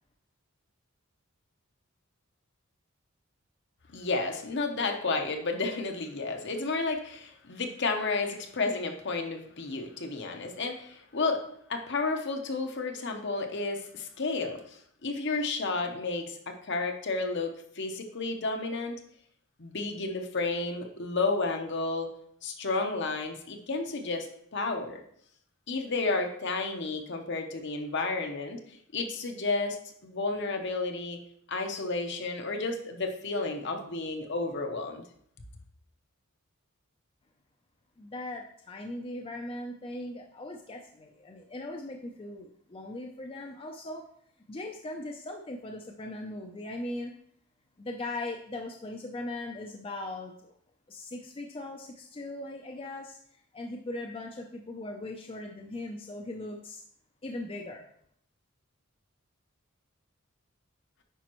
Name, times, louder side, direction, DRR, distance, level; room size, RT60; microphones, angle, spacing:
voice 1, 3.9-11.4 11.7-19.0 19.6-22.1 22.4-24.3 24.5-25.0 25.7-31.2 31.5-35.0, left 3 dB, 55° left, 4 dB, 0.9 m, -32 dB
voice 2, 38.0-44.0 44.5-47.1 47.8-50.5 50.9-53.2 53.5-56.8 57.2-57.9, left 2 dB, 25° left, 2 dB, 0.5 m, -39 dB
9.1 x 5.1 x 3.0 m, 0.68 s
head